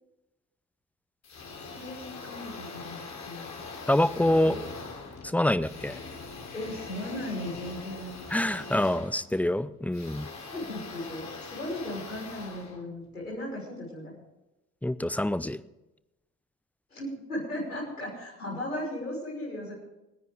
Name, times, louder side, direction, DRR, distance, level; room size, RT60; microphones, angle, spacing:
sound 1, 1.2-13.4, left 4 dB, 40° left, 3.3 m, -42 dB
voice 1, 1.7-3.0 3.2-3.6 4.4-4.5 6.5-8.1 10.5-14.1 16.9-19.7, left 1 dB, 85° left, -5 dB, 6.1 m, -36 dB
voice 2, 3.9-4.5 5.2-6.0 8.3-10.3 14.8-15.6, left 1 dB, 5° left, 16 dB, 0.5 m, -26 dB
27.5 x 10.0 x 3.6 m, 0.96 s
figure-of-eight pair, 50°, 44 cm